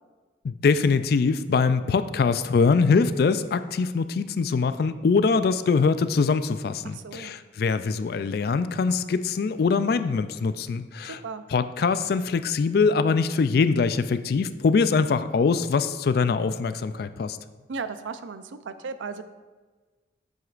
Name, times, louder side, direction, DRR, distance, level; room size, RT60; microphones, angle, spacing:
voice 1, 0.4-11.2 11.5-17.4, left 4 dB, 55° left, 12 dB, 0.3 m, -23 dB
voice 2, 6.8-7.4 11.0-11.4 17.7-19.2, right 5 dB, 80° right, 11 dB, 0.5 m, -36 dB
9.2 x 7.9 x 2.5 m, 1.3 s
head